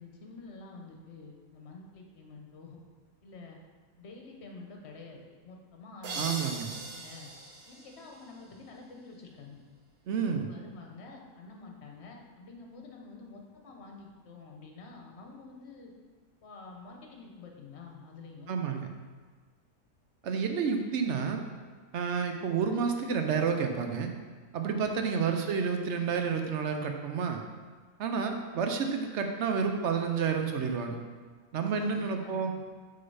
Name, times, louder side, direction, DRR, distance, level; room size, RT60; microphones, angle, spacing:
voice 1, 0.0-2.8 3.2-3.6 4.0-6.4 6.7-7.3 7.7-9.6 10.1-15.9 16.4-18.6 24.7-25.1 31.7-32.6, left 4 dB, 50° left, 1 dB, 1.1 m, -48 dB
sound 1, 6.0-8.8, right 3 dB, 85° right, 1.4 m, -40 dB
voice 2, 6.2-6.7 10.1-10.5 18.5-18.9 20.2-21.4 21.9-24.1 24.5-27.4 28.0-31.0 31.5-32.5, right 6 dB, 65° right, 5 dB, 0.8 m, -30 dB
6.6 x 3.9 x 5.5 m, 1.5 s
omnidirectional pair, 1.5 m